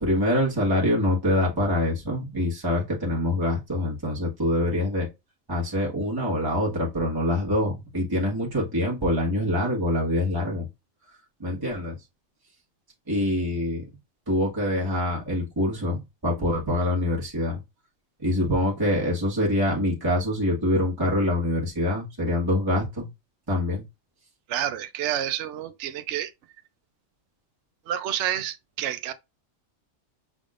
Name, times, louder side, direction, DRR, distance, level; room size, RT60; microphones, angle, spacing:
voice 1, 0.0-5.1 5.5-10.7 11.4-12.0 13.1-13.8 14.3-17.6 18.2-23.1 23.5-23.8, left 1 dB, 15° right, 1.4 m, -25 dB
voice 2, 24.5-26.3 27.9-29.1, right 11 dB, 65° right, 0.9 m, -29 dB
6.2 x 3.5 x 2.4 m
omnidirectional pair, 1.4 m